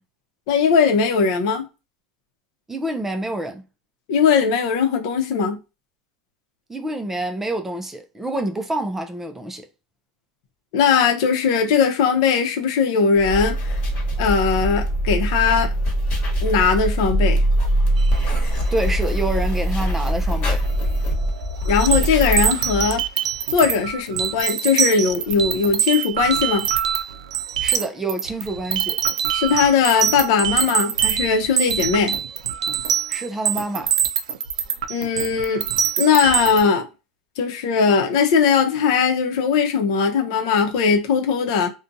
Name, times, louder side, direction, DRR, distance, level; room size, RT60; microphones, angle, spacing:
voice 1, 0.5-1.6 4.1-5.6 10.7-13.8 14.2-15.7 16.4-17.4 21.6-23.0 23.5-26.7 29.3-32.2 34.9-35.6 36.0-36.8 37.4-41.7, left 6 dB, 65° left, 0.7 m, -19 dB
voice 2, 2.7-3.6 6.7-9.7 18.7-20.6 27.6-29.0 33.1-33.9, right 1 dB, 10° right, 0.4 m, -27 dB
sound 1, 13.2-23.1, right 1 dB, 45° left, 1.1 m, -22 dB
sound 2, 18.0-18.5 20.6-20.9 21.2-36.6, right 9 dB, 90° right, 0.4 m, -24 dB
2.6 x 2.2 x 2.6 m
supercardioid pair, 125°, 3 cm